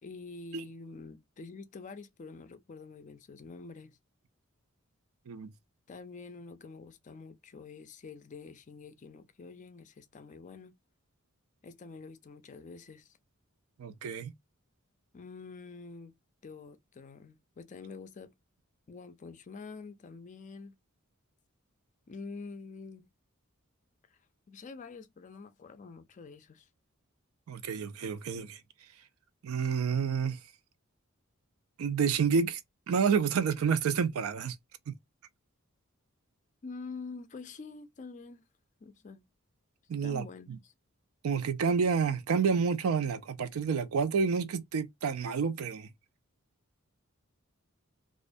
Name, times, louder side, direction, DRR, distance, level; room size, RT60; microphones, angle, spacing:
voice 1, 0.0-4.0 5.9-10.8 11.6-13.2 15.1-16.1 16.4-18.3 18.9-20.7 22.1-23.1 24.1-24.2 24.5-26.7 36.6-38.4 38.8-39.2 40.0-40.7, left 4 dB, 35° left, 0.4 m, -46 dB
voice 2, 13.8-14.3 27.5-28.6 29.4-30.4 31.8-32.6 32.9-34.6 34.9-35.0 39.9-40.2 41.2-45.9, right 6 dB, 80° right, 0.4 m, -29 dB
2.4 x 2.1 x 2.5 m
head